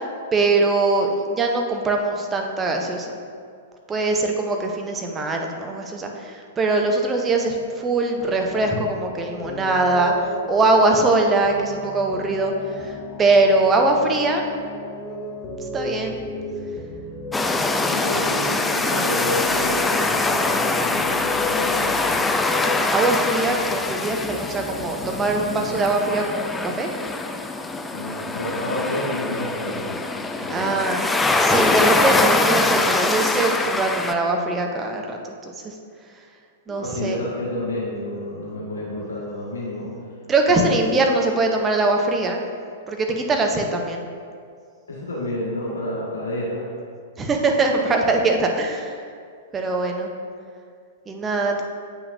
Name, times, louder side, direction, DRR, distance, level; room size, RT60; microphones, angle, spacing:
voice 1, 0.3-3.1 3.9-14.5 14.8-16.2 22.9-26.9 30.5-31.0 31.4-35.3 35.6-35.7 36.7-37.2 40.3-42.4 42.9-44.0 47.2-49.0 49.5-50.1 51.1-51.6, right 2 dB, 15° right, 2 dB, 0.7 m, -22 dB
sound 1, 8.2-26.7, left 3 dB, 25° left, 0.7 m, -34 dB
sound 2, 17.3-34.1, left 2 dB, 10° left, 0.3 m, -23 dB
voice 2, 17.7-22.5 27.9-30.0 30.4-30.7 36.7-39.9 40.5-41.0 44.9-46.7, left 1 dB, 65° left, -5 dB, 1.6 m, -30 dB
8.2 x 5.7 x 2.6 m, 2.2 s
figure-of-eight pair, 100°, 0 cm